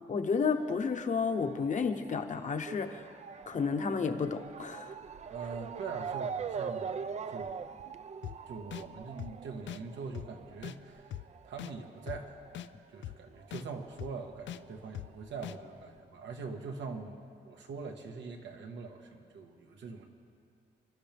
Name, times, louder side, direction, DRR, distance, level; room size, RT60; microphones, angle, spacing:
voice 1, 0.0-3.0 3.5-5.0, left 5 dB, 40° left, 6 dB, 1.0 m, -31 dB
Motor vehicle (road) / Siren, 0.5-13.5 13.8-15.0 15.6-15.7 16.0-16.1, right 6 dB, 35° right, 0.4 m, -43 dB
voice 2, 5.3-7.0 7.3-7.6 8.5-11.1 11.4-12.4 12.9-20.1, right 4 dB, 85° right, 3 dB, 1.6 m, -43 dB
sound 1, 8.2-8.4 8.7-8.8 9.2-9.3 9.7-9.8 10.1-10.3 10.6-10.8 11.1-11.2 11.6-11.7 12.1-12.2 12.5-12.7 13.0-13.2 13.5-13.6 14.0-14.1 14.5-14.6 14.9-15.1 15.4-15.6, left 11 dB, 90° left, 0.5 m, -40 dB
30.0 x 12.0 x 3.5 m, 2.4 s
wide cardioid pair, 145°, 19 cm